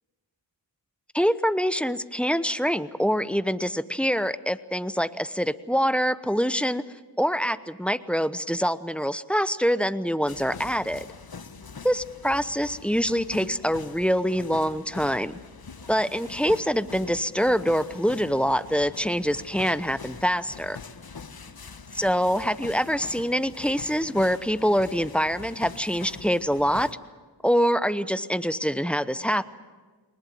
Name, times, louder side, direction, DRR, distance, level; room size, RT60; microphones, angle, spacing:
voice 1, 1.1-6.8 7.2-11.1 11.8-15.4 15.9-20.8 22.0-26.9 27.4-29.4, equal, 5° left, 14 dB, 0.9 m, -25 dB
sound 1, 10.3-26.9, left 5 dB, 55° left, 1.3 m, -43 dB
22.5 x 20.0 x 7.8 m, 1.4 s
cardioid pair, 40°, 44 cm